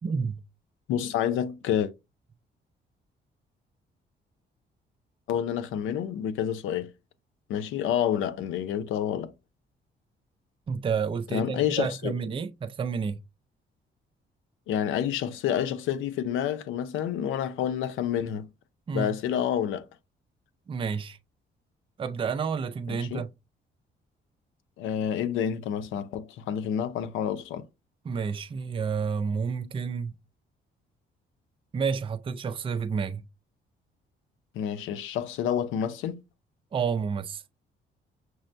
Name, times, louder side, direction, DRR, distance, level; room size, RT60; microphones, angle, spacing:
voice 1, 0.0-0.4 10.7-13.2 18.9-19.2 20.7-21.2 22.0-23.3 28.0-30.2 31.7-33.2 36.7-37.4, right 6 dB, 25° right, 0.4 m, -30 dB
voice 2, 0.9-1.9 5.3-6.9 7.5-9.3 11.3-12.1 14.7-18.5 18.9-19.9 22.9-23.2 24.8-27.7 34.5-36.2, left 9 dB, 90° left, 0.5 m, -29 dB
6.1 x 2.1 x 2.5 m
cardioid pair, 90°, 20 cm